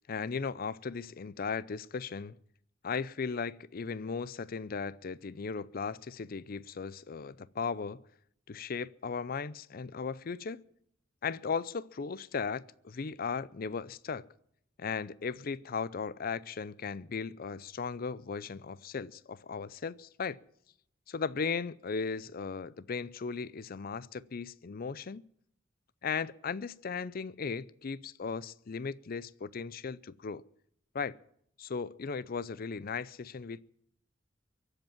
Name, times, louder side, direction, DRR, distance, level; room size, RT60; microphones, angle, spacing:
voice 1, 0.1-2.4 2.8-8.0 8.5-10.6 11.2-14.2 14.8-20.4 21.1-25.2 26.0-30.4 30.9-31.2 31.6-33.6, left 5 dB, 50° left, 0.5 m, -37 dB
23.5 x 8.0 x 7.2 m
head